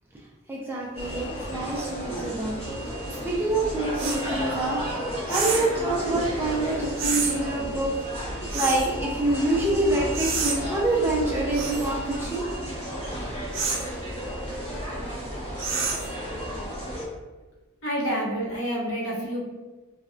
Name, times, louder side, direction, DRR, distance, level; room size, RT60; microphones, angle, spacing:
voice 1, 0.5-2.6 3.2-4.8 5.3-7.9 8.5-12.4, right 2 dB, 10° right, -4 dB, 0.3 m, -26 dB
sound 1, 1.0-17.1, equal, 25° left, 0.8 m, -33 dB
sound 2, 4.0-4.2 5.3-5.7 7.0-7.3 8.5-8.9 10.1-10.6 11.5-11.9 13.5-13.9 15.6-16.1, right 5 dB, 60° right, 0.6 m, -28 dB
voice 2, 17.8-19.4, equal, 65° left, -4 dB, 0.9 m, -28 dB
4.0 x 2.2 x 2.4 m, 1.2 s
head